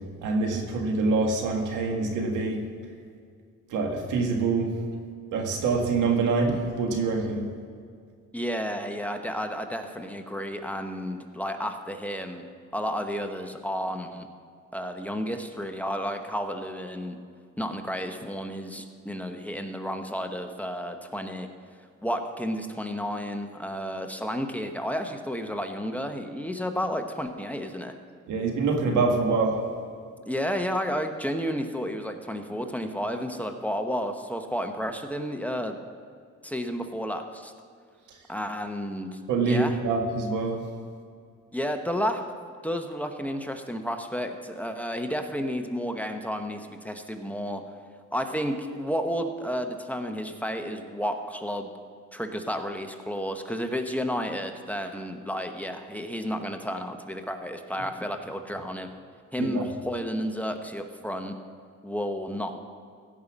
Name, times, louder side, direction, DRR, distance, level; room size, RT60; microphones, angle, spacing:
voice 1, 0.2-2.6 3.7-4.7 5.3-7.5 28.3-29.6 39.3-40.6 59.4-59.6, right 3 dB, 90° right, 2 dB, 1.9 m, -25 dB
voice 2, 8.3-14.3 14.7-17.2 17.6-21.5 22.0-27.9 30.3-35.8 36.4-37.5 38.3-39.2 39.4-39.8 41.5-42.2 42.6-47.6 48.1-51.7 52.1-58.9 59.3-61.4 61.8-62.6, equal, 5° left, 5 dB, 0.9 m, -31 dB
16.0 x 5.6 x 7.3 m, 2.2 s
cardioid pair, 90°, 30 cm